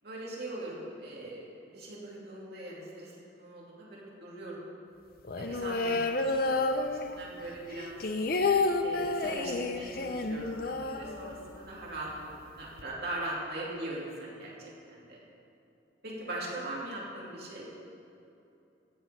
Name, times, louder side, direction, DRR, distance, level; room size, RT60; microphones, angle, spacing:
voice 1, 0.0-4.7 5.4-8.1 8.8-15.2 16.0-17.7, right 1 dB, 55° right, -5 dB, 3.0 m, -41 dB
sound 1, 5.2-7.4 7.7-11.7 12.0-12.1 12.3-12.8, left 3 dB, 50° left, 0.6 m, -30 dB
14.5 x 7.8 x 5.3 m, 2.7 s
head